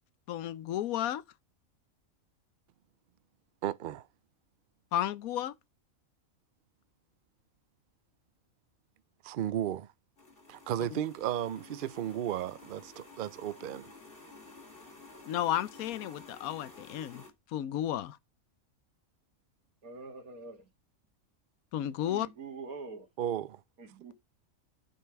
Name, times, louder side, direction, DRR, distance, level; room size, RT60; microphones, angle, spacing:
voice 1, 0.3-1.2 4.9-5.5 15.3-17.2 17.5-18.2 21.7-22.3, left 11 dB, 90° left, 1.1 m, -32 dB
voice 2, 3.6-4.1 9.2-9.9 10.5-13.9 23.2-23.6, right 11 dB, 60° right, 0.5 m, -34 dB
sound 1, 10.2-17.3, left 3 dB, 40° left, 2.9 m, -52 dB
voice 3, 19.8-20.7 22.1-23.1 23.8-24.1, right 4 dB, 90° right, 2.5 m, -44 dB
8.7 x 5.6 x 4.6 m
omnidirectional pair, 1.5 m